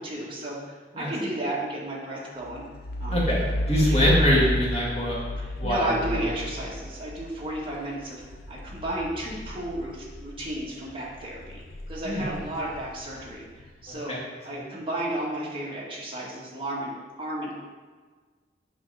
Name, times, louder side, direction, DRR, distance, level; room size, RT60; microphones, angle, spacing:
voice 1, 0.0-2.6 3.0-3.3 3.9-4.4 5.4-8.2 8.5-11.6 11.9-14.1 14.4-16.9 17.2-17.5, right 1 dB, 30° right, -6 dB, 1.9 m, -33 dB
sound 1, 2.5-10.7 11.1-13.7, left 1 dB, 60° left, 0.6 m, -32 dB
voice 2, 3.1-5.3 5.6-6.3 12.0-12.2 13.9-14.2 14.5-14.6, equal, 40° left, -5 dB, 2.1 m, -24 dB
7.6 x 3.7 x 5.7 m, 1.4 s
head